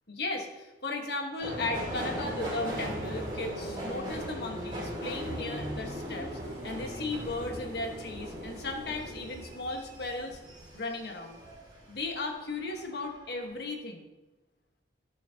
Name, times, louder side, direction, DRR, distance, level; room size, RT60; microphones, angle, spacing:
voice 1, 0.1-6.3 6.6-10.4 10.7-11.4 11.9-14.1, left 2 dB, 60° left, 2 dB, 1.5 m, -36 dB
Subway metro underground, 1.4-12.1 12.5-13.2 13.5-13.6, equal, 25° right, 3.4 m, -38 dB
17.0 x 6.3 x 2.9 m, 1.1 s
head